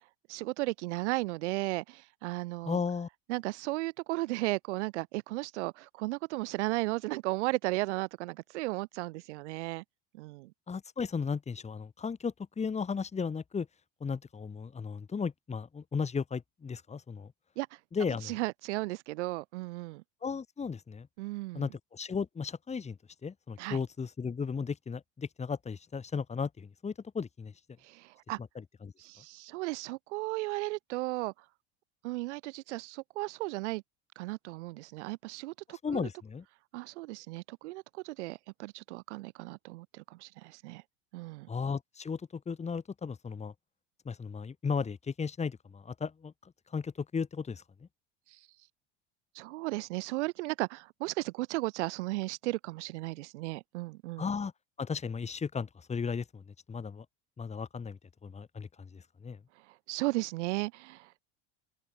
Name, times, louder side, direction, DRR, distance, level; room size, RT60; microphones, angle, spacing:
voice 1, 0.3-2.8 3.3-9.8 10.1-10.5 17.6-17.8 18.2-20.0 21.2-21.7 23.6-23.8 27.8-28.4 29.0-31.3 32.0-33.8 34.1-36.1 36.7-40.8 41.1-41.5 48.3-48.4 49.3-54.2 59.7-61.3, right 21 dB, 85° right, 5.0 m, -35 dB
voice 2, 2.6-3.1 10.7-13.7 14.0-17.3 17.9-18.3 20.2-21.1 21.5-27.5 28.5-28.9 35.7-36.4 41.5-43.5 44.0-47.6 54.2-54.5 54.8-56.4 56.7-57.0 57.4-59.4, left 5 dB, 20° left, 4.3 m, -35 dB
open air
supercardioid pair, 130°, 34 cm